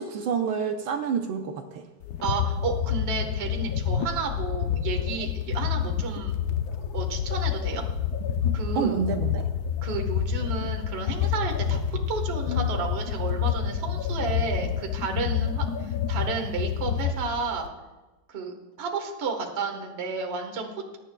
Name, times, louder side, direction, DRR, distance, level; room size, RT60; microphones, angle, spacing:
voice 1, 0.0-1.8 8.7-9.5, right 6 dB, 70° right, 6 dB, 1.4 m, -28 dB
sound 1, 2.0-17.7, left 8 dB, 75° left, 0.8 m, -28 dB
voice 2, 2.2-6.3 6.9-7.8 8.5-9.0 9.8-17.7 18.3-21.0, right 4 dB, 35° right, 3 dB, 1.3 m, -32 dB
20.5 x 10.0 x 2.2 m, 1.1 s
omnidirectional pair, 2.4 m